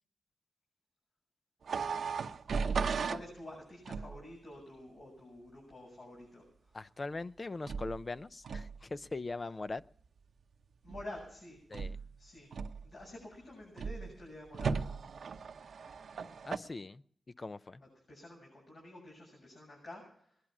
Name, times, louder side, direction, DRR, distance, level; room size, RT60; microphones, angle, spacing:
sound 1, 1.6-3.3 3.8-4.2 7.6-8.0 8.4-8.8 10.9-11.2 11.7-12.1 12.5-13.0 13.8-14.1 14.5-16.6, right 5 dB, 75° right, 0.8 m, -36 dB
voice 1, 2.6-6.8 10.8-11.6 12.2-12.5 12.8-14.9 18.1-20.4, left 1 dB, 65° left, -3 dB, 7.6 m, -49 dB
voice 2, 6.7-9.8 11.7-12.0 16.4-17.0 17.4-17.8, left 3 dB, 40° left, 15 dB, 0.5 m, -41 dB
19.5 x 11.0 x 6.1 m, 0.64 s
cardioid pair, 65°, 0 cm